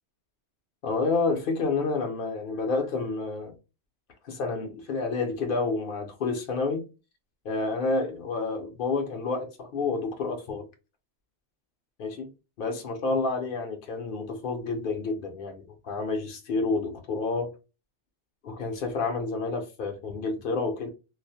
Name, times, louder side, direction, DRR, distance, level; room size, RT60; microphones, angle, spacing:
voice 1, 0.8-3.5 4.2-6.8 7.4-10.7 12.0-12.3 12.6-17.5 18.4-20.9, left 3 dB, 60° left, 0.7 m, -29 dB
2.3 x 2.0 x 2.6 m
omnidirectional pair, 1.2 m